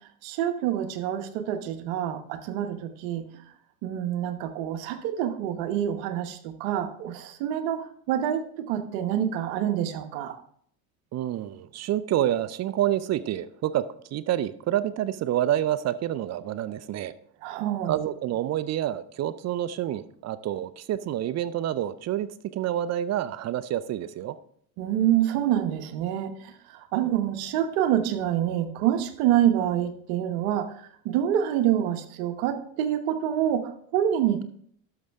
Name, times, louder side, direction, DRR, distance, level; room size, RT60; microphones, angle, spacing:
voice 1, 0.2-3.4 3.8-10.3 17.4-18.0 24.8-34.4, right 11 dB, 75° right, 8 dB, 1.2 m, -27 dB
voice 2, 11.1-13.9 14.1-17.1 17.9-24.4, right 12 dB, 40° right, 16 dB, 0.5 m, -28 dB
12.5 x 6.3 x 3.5 m, 0.62 s
supercardioid pair, 105°, 41 cm